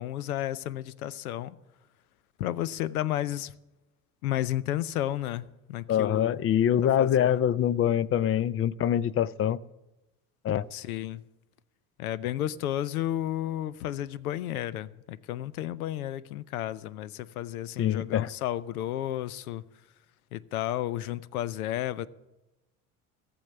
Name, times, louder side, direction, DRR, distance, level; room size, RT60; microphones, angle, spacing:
voice 1, 0.0-1.6 2.4-3.5 4.2-6.4 7.0-7.4 10.7-11.2 12.0-19.6 20.3-22.1, left 13 dB, 85° left, 0.6 m, -32 dB
voice 2, 5.9-9.6 10.4-10.7 17.8-18.3, left 10 dB, 30° left, 0.5 m, -24 dB
15.0 x 7.1 x 8.0 m
hypercardioid pair, 75°, 42 cm